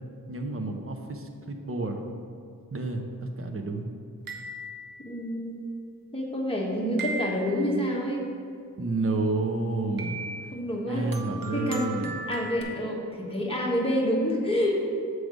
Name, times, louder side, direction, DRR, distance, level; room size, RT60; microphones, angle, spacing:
voice 1, 0.3-2.0 2.7-3.0 3.4-3.9 8.8-10.2 10.9-12.1, right 3 dB, 40° right, 4 dB, 0.8 m, -30 dB
sound 1, 4.3-5.1 7.0-7.7 10.0-10.6 11.1-12.6, right 3 dB, 75° right, 0.9 m, -37 dB
voice 2, 5.0-5.6 6.1-8.3 10.5-11.1 11.5-11.9 12.3-14.8, equal, 15° left, -3 dB, 1.4 m, -28 dB
7.6 x 4.8 x 5.2 m, 2.4 s
wide cardioid pair, 110°, 34 cm